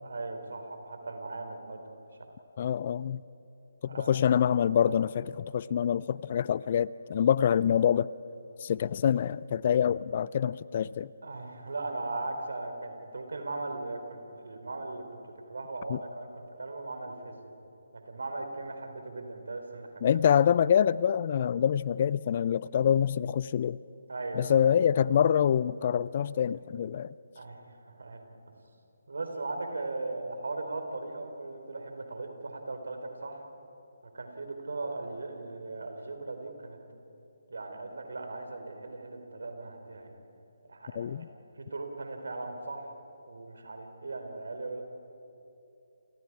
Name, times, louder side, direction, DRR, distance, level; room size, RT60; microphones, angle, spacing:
voice 1, 0.0-2.3 3.9-4.3 11.2-15.2 15.5-17.4 18.1-20.2 24.1-24.6 27.3-28.2 29.1-33.4 34.1-36.8 37.5-40.2 40.7-41.2 41.6-42.9 43.3-44.8, right 2 dB, 70° right, 5 dB, 4.1 m, -38 dB
voice 2, 2.6-3.2 3.8-8.1 8.6-11.1 15.9-16.0 20.0-23.8 24.4-27.1 41.0-41.3, left 9 dB, 40° left, 20 dB, 0.4 m, -26 dB
30.0 x 28.5 x 4.8 m, 2.8 s
figure-of-eight pair, 145°, 0 cm